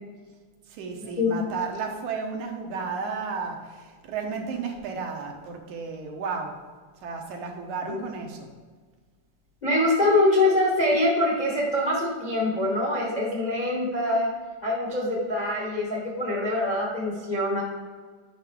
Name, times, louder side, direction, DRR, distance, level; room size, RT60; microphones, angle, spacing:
voice 1, 0.7-6.5 7.0-8.5, right 5 dB, 75° right, 2 dB, 2.4 m, -33 dB
voice 2, 9.6-14.3 14.6-17.6, left 2 dB, 55° left, -3 dB, 0.4 m, -24 dB
10.5 x 5.7 x 3.6 m, 1.5 s
omnidirectional pair, 3.5 m